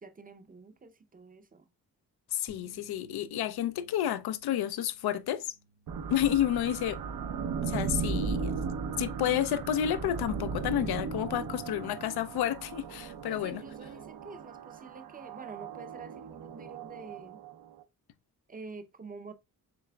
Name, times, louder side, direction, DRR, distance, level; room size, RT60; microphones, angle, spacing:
voice 1, 0.0-1.7 13.3-17.4 18.5-19.3, right 4 dB, 25° right, 0.6 m, -47 dB
voice 2, 2.3-5.5 6.1-7.0 7.6-8.6 9.0-13.6, left 11 dB, 80° left, 0.6 m, -30 dB
sound 1, 2.5-8.7, right 4 dB, 80° right, 2.6 m, -61 dB
sound 2, 5.9-17.8, right 5 dB, 65° right, 0.6 m, -37 dB
6.8 x 3.2 x 2.3 m
cardioid pair, 80°, 38 cm